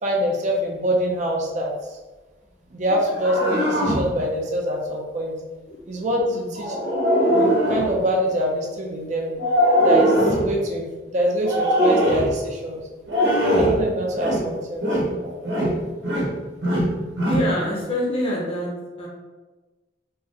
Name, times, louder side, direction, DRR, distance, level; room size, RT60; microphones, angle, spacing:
voice 1, 0.0-1.7 2.7-5.4 5.9-6.2 6.6-6.7 7.3-9.3 9.8-12.8 13.5-14.9 15.2-15.8, equal, 40° right, 0 dB, 0.4 m, -25 dB
sound 1, 2.9-4.1 6.6-7.9 9.4-10.5 11.4-12.3 13.1-13.8 14.1-14.5 14.8-15.1 15.4-16.3 16.6-17.5, equal, 75° right, 0.9 m, -20 dB
voice 2, 6.3-6.6 17.3-18.7 19.0-19.1, equal, 30° left, -4 dB, 0.7 m, -26 dB
3.7 x 2.1 x 2.7 m, 1.2 s
head